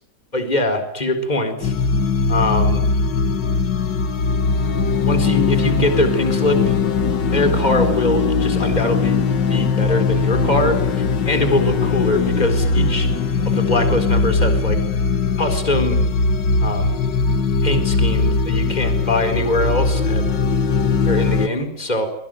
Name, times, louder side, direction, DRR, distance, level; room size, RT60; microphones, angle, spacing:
voice 1, 0.3-1.7 2.3-2.8 5.1-6.7 7.3-9.2 9.5-10.8 11.2-13.1 13.4-14.8 15.4-16.1 16.6-16.9 17.6-20.3 21.1-22.1, left 1 dB, 25° left, 8 dB, 4.5 m, -22 dB
sound 1, 1.6-21.5, left 4 dB, 85° left, 2.2 m, -20 dB
27.0 x 23.5 x 9.2 m, 0.71 s
omnidirectional pair, 1.9 m